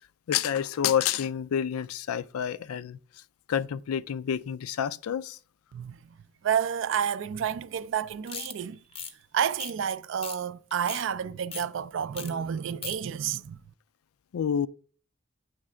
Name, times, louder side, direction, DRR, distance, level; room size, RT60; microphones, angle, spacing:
voice 1, 0.3-3.0 3.5-5.4 14.3-14.7, left 8 dB, 85° left, 0.4 m, -28 dB
voice 2, 6.4-8.8 9.3-13.6, right 8 dB, 60° right, 0.3 m, -30 dB
sound 1, 8.3-8.5 8.9-9.1 9.6-9.9 10.2-10.4 10.7-11.0 11.5-11.7 12.1-12.3 12.6-13.0, left 6 dB, 25° left, 0.5 m, -38 dB
8.6 x 3.2 x 4.8 m
head